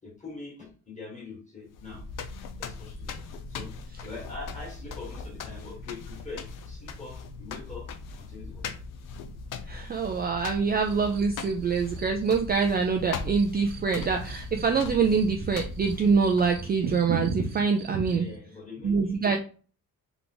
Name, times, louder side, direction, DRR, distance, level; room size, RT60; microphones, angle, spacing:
voice 1, 0.0-2.1 2.6-3.2 3.5-3.7 4.0-8.7 18.1-19.4, left 3 dB, 20° left, -2 dB, 1.9 m, -43 dB
sound 1, 1.7-16.8, left 4 dB, 65° left, 0.6 m, -40 dB
voice 2, 9.7-18.3 18.8-19.4, right 5 dB, 30° right, 4 dB, 0.4 m, -25 dB
sound 2, 10.8-18.4, right 4 dB, 65° right, 0.9 m, -38 dB
3.5 x 3.4 x 3.8 m, 0.39 s
cardioid pair, 160°, 34 cm